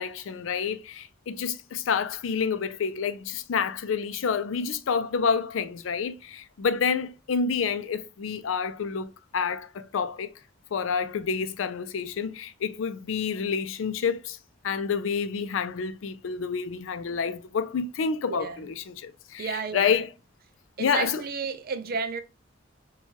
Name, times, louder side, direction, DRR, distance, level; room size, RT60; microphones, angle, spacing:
voice 1, 0.0-10.3 10.7-14.4 14.6-20.1 20.8-21.2, left 6 dB, 85° left, 0.4 m, -28 dB
voice 2, 11.1-11.6 18.3-18.7 19.4-19.9 20.8-22.2, right 5 dB, 50° right, 0.4 m, -33 dB
4.5 x 2.3 x 2.8 m
head